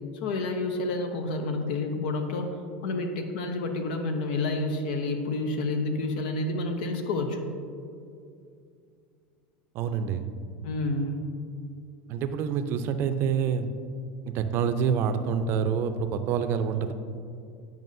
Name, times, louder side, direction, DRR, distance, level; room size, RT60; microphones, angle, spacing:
voice 1, 0.1-2.6 2.8-7.4 10.6-11.3, left 2 dB, 75° left, 5 dB, 0.8 m, -29 dB
voice 2, 9.7-10.3 12.1-13.7 14.3-16.9, right 7 dB, 55° right, 9 dB, 0.5 m, -27 dB
9.1 x 5.2 x 2.6 m, 2.4 s
hypercardioid pair, 95°, 5 cm